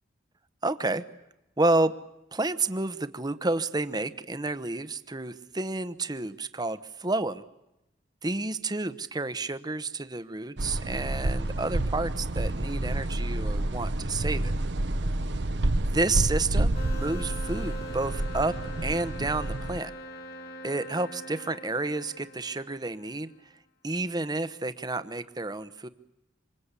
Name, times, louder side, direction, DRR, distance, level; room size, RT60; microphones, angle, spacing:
voice 1, 0.6-1.0 1.6-1.9 2.3-7.4 8.2-14.5 15.9-18.5 18.8-19.9 20.6-23.3 23.8-25.9, right 2 dB, 20° right, 12 dB, 1.0 m, -30 dB
rattling window, 10.6-19.8, right 1 dB, 65° right, 1.0 m, -29 dB
sound 1, 16.7-23.2, equal, 60° left, 2.7 m, -43 dB
26.5 x 26.0 x 8.4 m, 0.90 s
head